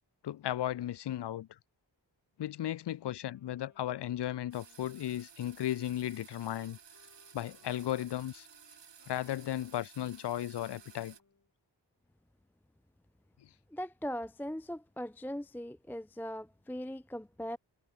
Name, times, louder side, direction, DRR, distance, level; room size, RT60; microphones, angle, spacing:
voice 1, 0.2-1.5 2.4-6.8 7.3-8.5 9.1-11.1, left 12 dB, 70° left, 0.6 m, -35 dB
Wind instrument woodwind instrument, 3.3-11.5, left 3 dB, 45° left, 6.1 m, -69 dB
sound 1, 4.5-11.2, right 7 dB, 85° right, 3.8 m, -56 dB
voice 2, 13.7-17.6, equal, 5° left, 0.5 m, -40 dB
cardioid pair, 50°, 42 cm